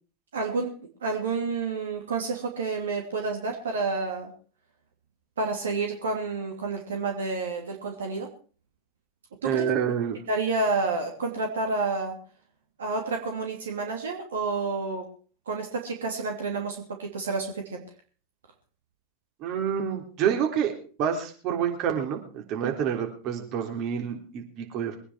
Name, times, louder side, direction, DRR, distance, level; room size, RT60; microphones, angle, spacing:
voice 1, 0.3-0.7 1.0-4.3 5.4-8.3 9.4-9.6 10.3-12.2 12.8-15.1 15.5-17.8 22.6-22.7, right 3 dB, 70° right, 2 dB, 2.8 m, -29 dB
voice 2, 9.4-10.2 19.4-20.7 21.0-25.0, right 8 dB, 45° right, 3 dB, 3.5 m, -28 dB
22.5 x 9.8 x 4.7 m, 0.40 s
figure-of-eight pair, 90°, 0 cm